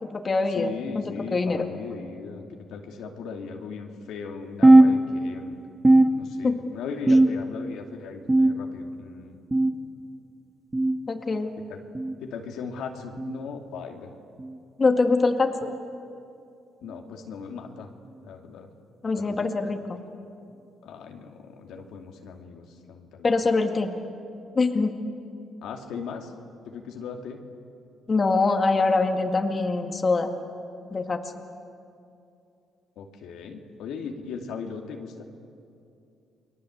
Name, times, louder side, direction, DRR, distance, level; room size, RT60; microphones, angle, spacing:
voice 1, 0.0-0.7 0.9-1.7 6.4-6.6 11.1-11.5 14.8-15.7 19.0-20.0 23.2-24.0 24.5-24.9 28.1-30.3 30.9-31.2, left 3 dB, 35° left, 4 dB, 2.1 m, -24 dB
voice 2, 0.5-2.4 2.7-5.6 6.2-9.4 11.7-11.8 12.2-14.1 16.8-17.9 18.2-18.7 19.2-19.5 20.8-23.4 25.6-26.3 26.7-27.4 33.0-35.3, left 5 dB, 85° left, 2 dB, 2.5 m, -38 dB
sound 1, 4.6-5.5 5.8-6.6 7.1-7.7 8.3-8.9 9.5-9.9 10.7-11.0 11.9-12.2 13.2-13.4 14.4-14.6 15.6-15.8 16.8-17.0 18.0-18.1 19.3-19.4, right 2 dB, 20° right, 1.9 m, -19 dB
30.0 x 21.5 x 8.1 m, 2.6 s
cardioid pair, 90°, 0 cm